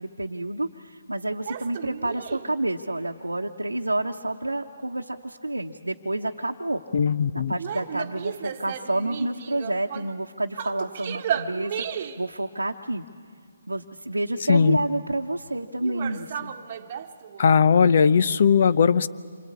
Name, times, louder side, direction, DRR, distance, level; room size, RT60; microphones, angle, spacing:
voice 1, 0.0-6.8 7.3-13.0 13.7-16.5, right 2 dB, 90° right, 0 dB, 1.0 m, -29 dB
sound 1, 1.5-2.6 7.5-10.2 10.5-12.3 15.8-17.6, right 8 dB, 35° right, 1.2 m, -34 dB
voice 2, 6.9-7.5 14.5-14.8 17.4-19.1, left 6 dB, 50° left, 15 dB, 0.7 m, -18 dB
27.5 x 25.5 x 8.5 m, 2.1 s
figure-of-eight pair, 140°, 0 cm